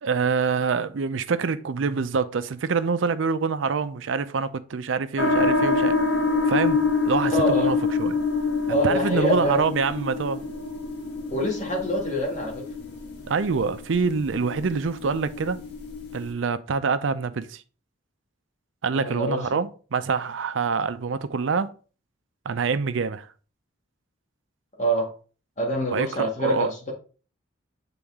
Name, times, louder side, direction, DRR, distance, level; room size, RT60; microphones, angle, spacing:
voice 1, 0.0-6.0 6.5-8.1 8.7-10.4 13.3-15.6 16.1-17.6 18.8-21.7 22.5-23.3 25.9-26.7, right 5 dB, 70° right, 0.5 m, -26 dB
sound 1, 5.2-16.3, left 3 dB, 55° left, 1.3 m, -26 dB
voice 2, 7.2-7.8 8.7-9.6 11.3-12.7 18.9-19.4 24.8-25.1 25.6-26.9, equal, 35° left, 1.8 m, -25 dB
7.1 x 3.8 x 3.5 m
head